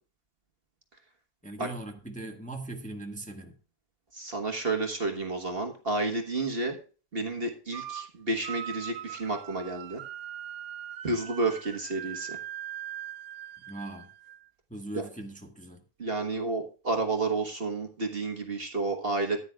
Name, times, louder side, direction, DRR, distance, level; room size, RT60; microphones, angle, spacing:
voice 1, 1.4-3.5 13.7-14.1 14.7-15.8, right 2 dB, 5° left, 3 dB, 1.5 m, -40 dB
voice 2, 4.1-6.8 7.1-10.0 11.0-12.4 14.9-15.0 16.0-19.4, right 3 dB, 45° right, 4 dB, 1.6 m, -30 dB
sound 1, 7.7-8.1 8.4-14.5, right 10 dB, 85° right, 1.1 m, -41 dB
14.5 x 9.8 x 2.3 m, 0.37 s
omnidirectional pair, 1.5 m